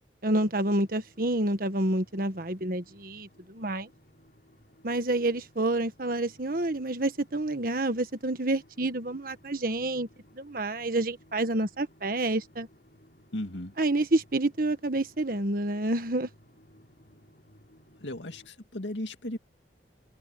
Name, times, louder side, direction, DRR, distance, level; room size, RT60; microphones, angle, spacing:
voice 1, 0.2-3.9 4.8-10.1 10.3-12.7 13.8-16.3, right 2 dB, 50° right, 1.5 m, -28 dB
sound 1, 0.8-18.5, equal, 60° left, 6.8 m, -59 dB
voice 2, 13.3-13.7 18.0-19.4, left 1 dB, 90° left, 2.3 m, -36 dB
head